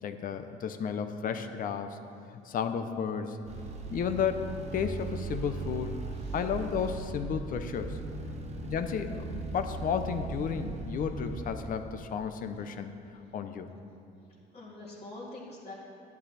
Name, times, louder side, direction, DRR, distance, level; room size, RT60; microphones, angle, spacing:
voice 1, 0.0-2.0 2.3-3.4 3.9-4.5 4.7-6.0 6.3-8.0 8.6-12.9 13.3-13.7, left 7 dB, 55° left, 8 dB, 0.8 m, -33 dB
sound 1, 3.4-11.5, right 3 dB, 40° right, 1.2 m, -38 dB
voice 2, 3.5-3.9 6.1-6.5 12.5-12.6 14.5-15.7, left 2 dB, 35° left, -8 dB, 2.2 m, -46 dB
11.0 x 11.0 x 4.2 m, 2.8 s
cardioid pair, 110°, 17 cm